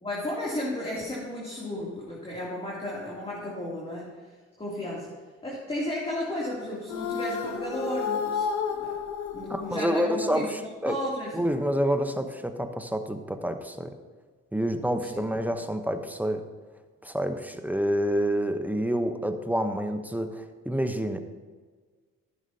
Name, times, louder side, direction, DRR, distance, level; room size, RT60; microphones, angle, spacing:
voice 1, 0.0-4.1 4.6-5.2 5.4-8.5 8.8-9.0 9.3-10.5 10.8-11.3 15.0-15.2, left 1 dB, 20° left, -5 dB, 2.8 m, -33 dB
sound 1, 6.9-10.3, left 6 dB, 75° left, 1.0 m, -31 dB
voice 2, 9.5-11.0 11.3-13.9 14.5-16.4 17.0-21.2, equal, 5° right, 7 dB, 0.9 m, -28 dB
14.5 x 11.0 x 2.8 m, 1.5 s
cardioid pair, 90°, 30 cm